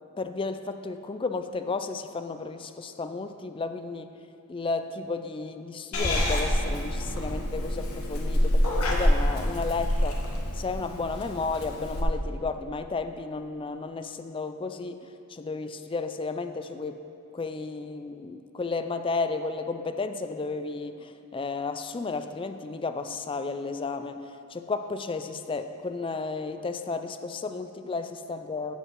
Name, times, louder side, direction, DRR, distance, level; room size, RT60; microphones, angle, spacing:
voice 1, 0.2-4.1 4.5-10.2 10.5-17.0 17.3-24.2 24.5-28.7, left 4 dB, 25° left, 9 dB, 0.3 m, -33 dB
Purr / Meow, 5.9-12.0, equal, 80° left, 1.3 m, -27 dB
15.5 x 5.3 x 4.6 m, 2.7 s
head